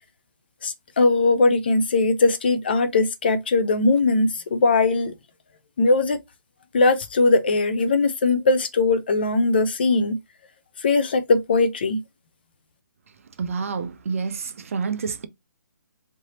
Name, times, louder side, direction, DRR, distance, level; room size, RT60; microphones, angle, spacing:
voice 1, 0.6-5.1 5.8-6.2 6.7-10.2 10.8-12.0, left 3 dB, 30° left, 0.4 m, -20 dB
voice 2, 13.4-15.3, right 5 dB, 40° right, 0.5 m, -28 dB
3.3 x 2.7 x 2.7 m
hypercardioid pair, 170°, 11 cm